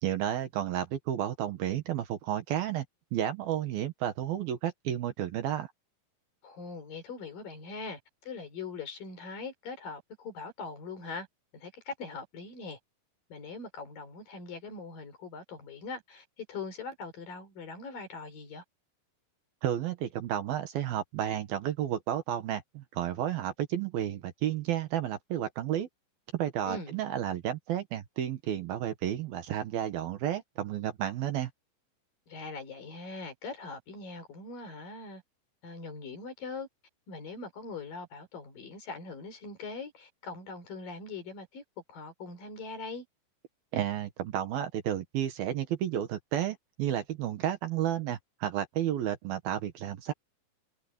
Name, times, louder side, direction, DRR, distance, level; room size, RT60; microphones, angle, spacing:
voice 1, 0.0-2.9 3.1-5.7 19.6-25.9 26.3-31.5 43.7-50.1, right 11 dB, 70° right, 2.9 m, -32 dB
voice 2, 6.4-11.3 11.5-12.8 13.3-18.6 26.7-26.9 32.3-35.2 35.6-36.7 37.1-41.6 41.9-43.1, left 4 dB, 55° left, 5.9 m, -41 dB
omnidirectional pair, 4.9 m